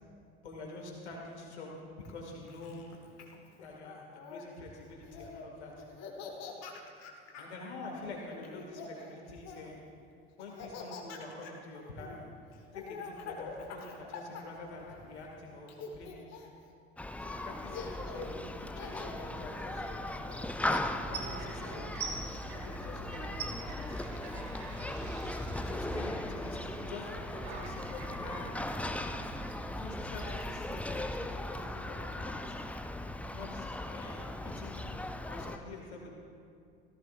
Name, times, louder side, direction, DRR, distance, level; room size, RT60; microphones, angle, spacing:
voice 1, 0.4-2.9 3.6-5.8 7.4-9.8 10.4-12.2 12.7-16.3 17.3-20.5 21.1-21.9 22.5-24.5 25.6-28.5 29.7-32.6 33.3-34.8 35.3-36.1, left 2 dB, 75° left, -1 dB, 2.3 m, -46 dB
Laughter, 2.0-4.4 5.0-5.5 5.8-7.5 8.3-9.8 10.4-15.3 15.7-16.6 17.3-17.4 17.7-18.4 18.8-19.3 20.3-20.8, left 5 dB, 50° left, 1.7 m, -45 dB
Human group actions, 17.0-35.6, left 1 dB, 5° left, 0.6 m, -38 dB
sound 1, 21.0-31.8, right 4 dB, 70° right, 2.1 m, -45 dB
17.5 x 14.5 x 2.6 m, 2.4 s
figure-of-eight pair, 60°, 34 cm